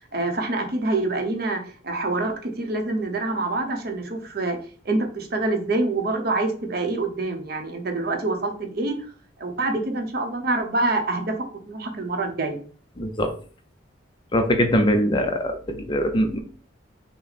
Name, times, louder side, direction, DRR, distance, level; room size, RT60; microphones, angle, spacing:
voice 1, 0.1-4.6 4.8-9.0 9.4-11.3 11.7-12.6, right 2 dB, 55° right, 4 dB, 0.7 m, -26 dB
voice 2, 13.0-13.3 14.3-16.4, equal, 25° left, 6 dB, 0.5 m, -22 dB
5.8 x 2.1 x 4.0 m, 0.43 s
head